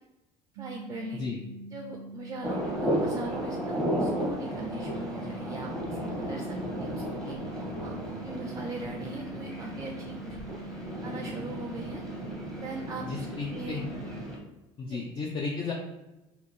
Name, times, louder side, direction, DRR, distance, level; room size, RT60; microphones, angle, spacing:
voice 1, 0.6-1.2 1.7-7.4 7.8-10.6 11.0-12.0 12.6-13.8 14.9-15.0, right 2 dB, 25° right, 2 dB, 0.4 m, -40 dB
sound 1, 0.6-14.2, right 2 dB, 85° right, 0.4 m, -44 dB
sound 2, 2.4-14.4, equal, 5° left, 1.0 m, -34 dB
voice 2, 13.1-13.8 14.8-15.7, left 4 dB, 40° left, -1 dB, 0.6 m, -34 dB
2.9 x 2.7 x 4.2 m, 1.0 s
supercardioid pair, 95°, 13 cm